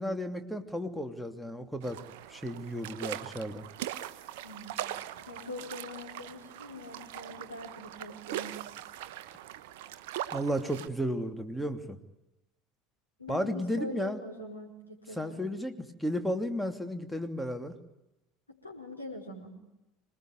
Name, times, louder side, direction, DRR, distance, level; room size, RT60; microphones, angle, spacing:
voice 1, 0.0-2.0 2.3-3.6 10.3-12.0 13.3-14.2 15.2-15.7 16.0-17.7, equal, ahead, 7 dB, 2.9 m, -33 dB
sound 1, 1.8-10.9, right 12 dB, 60° right, 1.2 m, -41 dB
voice 2, 4.4-4.8 5.3-8.5 13.2-15.5 18.5-19.5, left 1 dB, 90° left, 0 dB, 4.8 m, -43 dB
26.0 x 20.5 x 9.7 m, 0.94 s
figure-of-eight pair, 70°, 0 cm